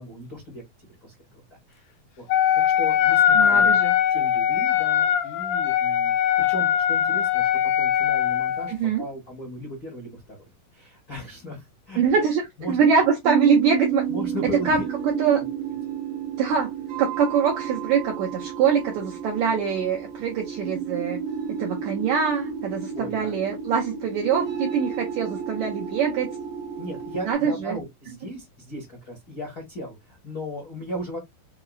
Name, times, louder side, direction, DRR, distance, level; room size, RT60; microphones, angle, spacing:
voice 1, 0.0-1.8 2.2-2.3 2.5-3.8 4.1-8.7 9.0-12.2 12.6-12.8 14.1-14.9 15.4-15.5 22.9-23.4 26.8-31.2, equal, 60° left, 0.9 m, -37 dB
Wind instrument woodwind instrument, 2.3-8.8, left 9 dB, 85° left, 2.3 m, -21 dB
voice 2, 3.3-3.9 8.7-9.0 12.0-12.4 12.7-14.0 14.6-15.4 16.4-16.7 17.0-21.2 21.5-26.3 27.3-27.8, right 6 dB, 80° right, 1.6 m, -23 dB
sound 1, 13.2-27.3, right 8 dB, 60° right, 1.3 m, -31 dB
5.5 x 2.0 x 2.3 m
omnidirectional pair, 4.0 m